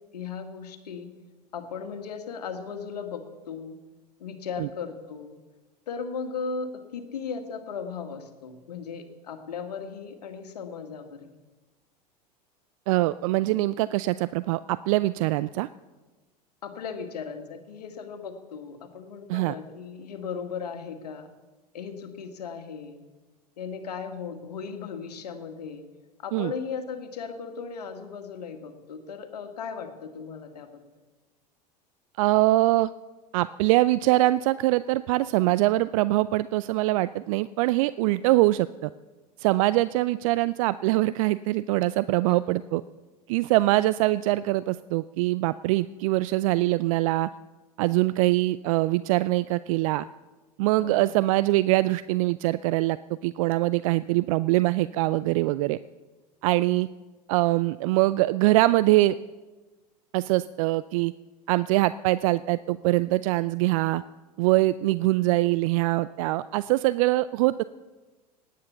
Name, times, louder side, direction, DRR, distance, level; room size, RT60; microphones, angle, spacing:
voice 1, 0.1-1.1 1.5-3.8 4.2-5.4 5.9-11.3 16.6-21.3 21.7-23.0 23.6-25.8 26.2-30.8 42.2-42.4 50.8-51.0 56.7-56.8, left 6 dB, 75° left, 7 dB, 1.9 m, -37 dB
voice 2, 12.9-15.7 19.3-19.5 26.3-26.5 32.2-32.9 33.3-38.9 39.4-42.8 43.3-47.3 47.8-50.0 50.6-53.0 53.2-55.8 56.4-56.9 57.3-59.2 60.1-61.1 61.5-64.0 64.4-67.6, right 18 dB, 55° right, 17 dB, 0.4 m, -23 dB
18.5 x 9.4 x 7.0 m, 1.2 s
figure-of-eight pair, 85°, 21 cm